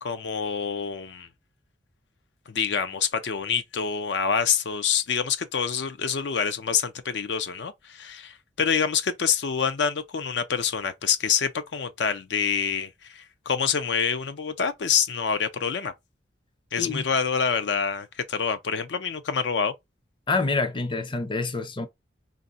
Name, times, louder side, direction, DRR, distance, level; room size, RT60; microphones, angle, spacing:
voice 1, 0.0-1.3 2.5-15.9 16.7-19.7, left 6 dB, 75° left, 0.5 m, -26 dB
voice 2, 20.3-21.9, left 3 dB, 30° left, 0.6 m, -27 dB
3.4 x 2.6 x 4.0 m
head